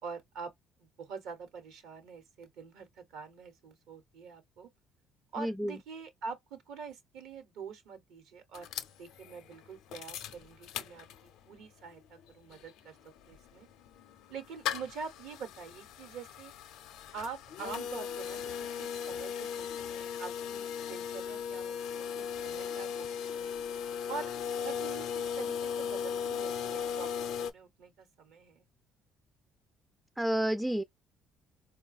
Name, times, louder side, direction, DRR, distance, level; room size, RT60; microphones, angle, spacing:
voice 1, 0.0-0.5 0.8-4.7 5.3-8.7 9.0-13.7 14.3-16.5 17.1-23.6 24.1-28.7, right 5 dB, 80° right, 1.0 m, -45 dB
voice 2, 5.4-5.8 30.2-30.8, right 1 dB, 10° right, 0.3 m, -30 dB
sound 1, 8.5-11.5 11.9-12.0 12.2-27.5, left 7 dB, 80° left, 0.5 m, -37 dB
4.1 x 2.2 x 2.3 m
supercardioid pair, 85°, 0 cm